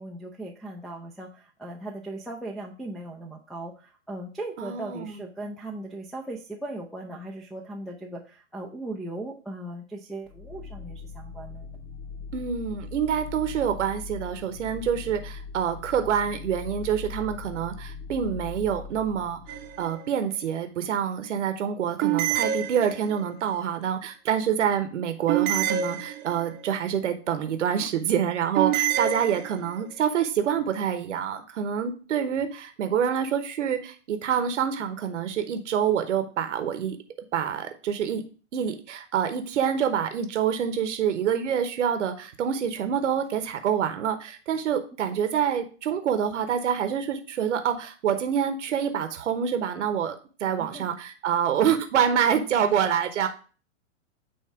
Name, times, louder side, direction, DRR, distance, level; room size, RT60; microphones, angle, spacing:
voice 1, 0.0-11.7 50.6-50.8, right 2 dB, ahead, -4 dB, 0.6 m, -38 dB
voice 2, 4.6-5.2 12.3-19.4 19.8-37.0 37.3-38.2 38.5-53.3, right 8 dB, 75° right, 8 dB, 1.0 m, -26 dB
sound 1, 10.2-19.9, left 5 dB, 55° left, 1.4 m, -40 dB
sound 2, 19.5-20.1 22.0-23.3 25.3-26.6 28.5-29.8, right 11 dB, 30° right, 0.8 m, -27 dB
8.7 x 3.1 x 4.7 m, 0.37 s
hypercardioid pair, 110°, 37 cm